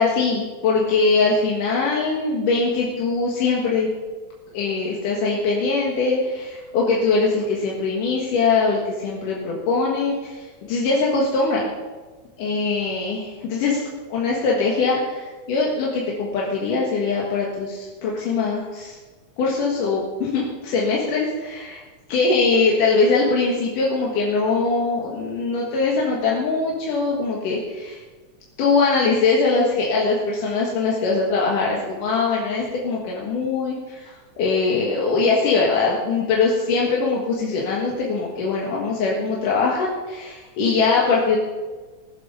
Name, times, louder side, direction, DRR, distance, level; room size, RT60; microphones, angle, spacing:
voice 1, 0.0-3.9 4.5-10.4 10.7-11.7 12.4-13.8 14.1-19.0 19.4-21.8 22.1-28.0 28.6-41.4, left 4 dB, 85° left, -3 dB, 3.2 m, -22 dB
19.0 x 7.7 x 5.5 m, 1.3 s
omnidirectional pair, 3.6 m